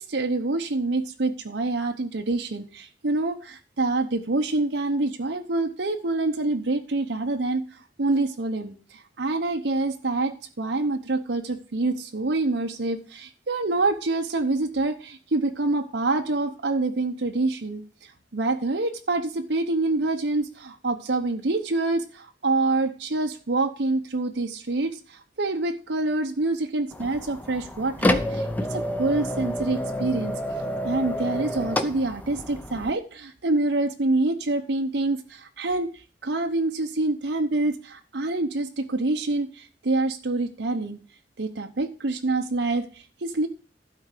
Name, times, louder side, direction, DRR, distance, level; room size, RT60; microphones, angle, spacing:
voice 1, 0.0-30.4 30.8-35.9 36.2-41.0 41.4-43.5, right 2 dB, 80° right, 5 dB, 0.9 m, -26 dB
sound 1, 26.9-32.9, left 1 dB, 10° left, 0.7 m, -29 dB
12.0 x 4.6 x 6.5 m, 0.37 s
head